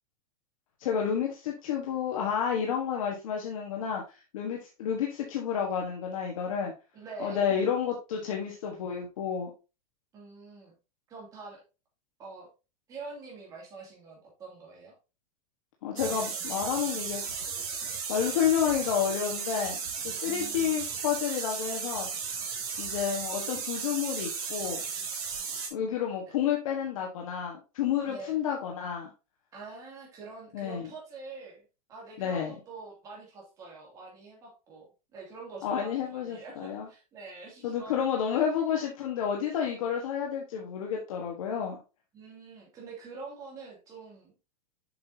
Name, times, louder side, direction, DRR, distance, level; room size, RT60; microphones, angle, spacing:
voice 1, 0.8-6.7 7.2-9.5 15.8-17.2 18.1-19.8 20.0-22.1 22.8-24.8 25.7-29.1 30.5-30.9 32.2-32.5 35.6-36.9 37.6-41.8, left 8 dB, 65° left, 0 dB, 1.5 m, -30 dB
voice 2, 6.9-7.7 10.1-10.7 11.1-11.6 12.2-12.5 12.9-14.9 20.2-20.8 28.0-28.3 29.5-31.6 31.9-38.4 42.1-44.3, right 3 dB, 20° right, -2 dB, 2.5 m, -45 dB
sound 1, 16.0-25.7, right 6 dB, 40° right, 2.4 m, -35 dB
7.6 x 5.8 x 2.8 m, 0.30 s
supercardioid pair, 180°, 18 cm